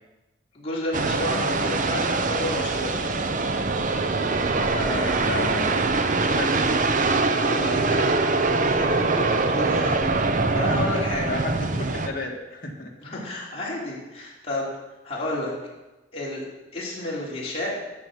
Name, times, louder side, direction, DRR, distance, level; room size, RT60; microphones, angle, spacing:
voice 1, 0.5-3.0 4.5-5.3 7.3-8.1 8.6-10.0 10.5-11.3 13.0-14.7 15.0-15.5 16.1-16.4 16.7-17.8, left 1 dB, 30° left, -6 dB, 3.4 m, -31 dB
sound 1, 0.9-12.1, right 3 dB, 45° right, 0.7 m, -23 dB
voice 2, 4.7-6.7 11.3-13.3, left 2 dB, 50° left, 1 dB, 1.8 m, -33 dB
12.0 x 7.1 x 6.3 m, 1.1 s
head